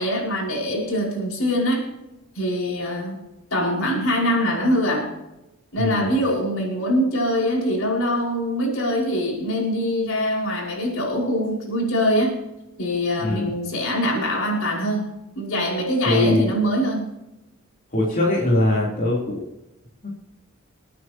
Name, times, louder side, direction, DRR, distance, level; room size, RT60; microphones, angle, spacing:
voice 1, 0.0-1.9 2.3-3.2 3.5-5.1 5.7-12.4 12.8-15.1 15.4-17.1, equal, 80° left, -2 dB, 5.5 m, -23 dB
voice 2, 5.8-6.1 13.2-13.5 16.0-16.5 17.9-19.4 20.0-20.1, left 1 dB, 40° left, -4 dB, 3.5 m, -21 dB
27.5 x 9.4 x 3.0 m, 0.92 s
head